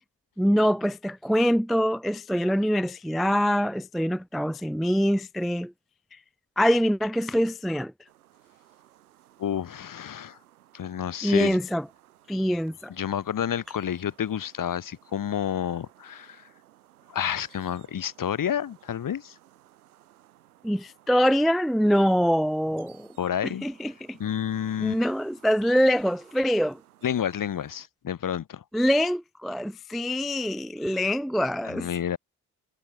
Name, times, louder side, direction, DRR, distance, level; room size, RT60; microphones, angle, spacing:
voice 1, 0.4-5.7 6.1-6.2 6.6-7.9 11.2-11.9 12.3-12.9 20.6-23.1 23.4-24.2 24.8-26.8 28.7-31.9, equal, ahead, 0.3 m, -24 dB
sound 1, 8.1-27.9, right 14 dB, 90° right, 5.5 m, -58 dB
voice 2, 9.4-10.4 10.7-11.6 12.9-16.4 17.1-19.4 23.2-23.7 24.2-25.0 27.0-28.6 31.6-32.2, left 9 dB, 50° left, 2.0 m, -30 dB
hypercardioid pair, 50°, 43 cm